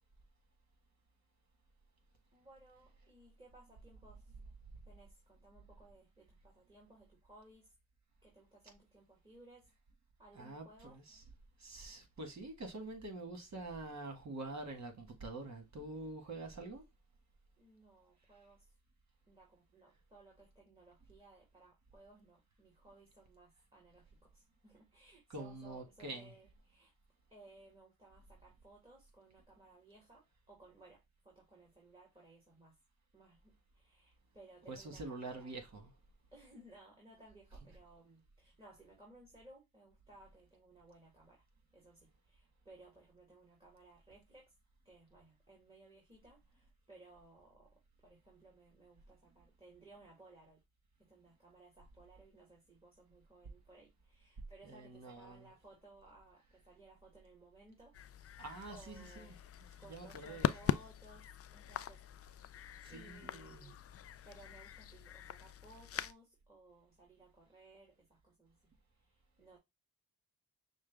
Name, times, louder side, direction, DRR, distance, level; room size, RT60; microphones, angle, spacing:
voice 1, 2.3-4.3 4.9-7.7 8.2-9.7 10.2-11.0 17.6-18.7 19.3-26.9 27.3-32.8 33.1-35.5 36.3-41.4 41.7-44.5 44.8-50.6 51.0-58.0 58.2-59.4 59.8-62.0 62.4-63.8 64.2-68.6 69.0-69.6, right 2 dB, 15° right, 2.1 m, -61 dB
voice 2, 10.3-11.2 11.6-16.8 25.3-26.3 34.7-35.9 54.6-55.5 58.4-59.4 59.8-60.6 62.8-63.7, right 2 dB, 50° right, 1.8 m, -46 dB
sound 1, 57.9-66.1, left 10 dB, 40° left, 0.4 m, -42 dB
6.3 x 2.2 x 3.4 m
cardioid pair, 65°, 36 cm